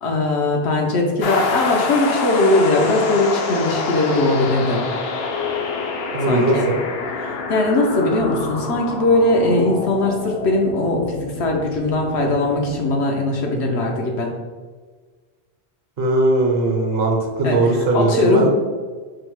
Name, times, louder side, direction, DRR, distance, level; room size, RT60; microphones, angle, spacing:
voice 1, 0.0-4.8 6.2-6.7 7.2-14.3 17.4-18.5, left 2 dB, 85° left, 0 dB, 1.1 m, -20 dB
sound 1, 1.2-12.8, left 3 dB, 70° left, 0.8 m, -27 dB
sound 2, 2.5-13.7, left 7 dB, 40° left, 0.6 m, -38 dB
voice 2, 6.1-6.8 16.0-18.5, right 2 dB, 65° right, 1 dB, 1.0 m, -19 dB
4.9 x 2.1 x 4.6 m, 1.5 s
omnidirectional pair, 1.1 m